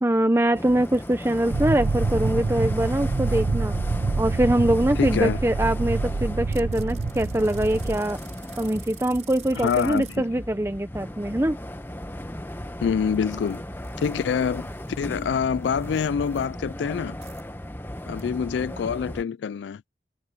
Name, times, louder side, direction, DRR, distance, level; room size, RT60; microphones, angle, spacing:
voice 1, 0.0-3.7 4.2-8.2 8.6-11.6, right 1 dB, 15° right, 0.7 m, -23 dB
sound 1, 0.5-19.2, left 1 dB, 10° left, 1.2 m, -36 dB
sound 2, 0.8-3.4 6.5-10.2 13.0-13.6 13.8-16.5 17.2-17.4 18.2-18.3, right 11 dB, 40° right, 5.4 m, -50 dB
sound 3, 1.5-8.0, right 3 dB, 75° right, 0.6 m, -26 dB
voice 2, 5.0-5.4 9.6-10.2 12.8-13.6 14.0-14.7 15.0-17.2 18.1-19.8, left 6 dB, 85° left, 0.3 m, -26 dB
head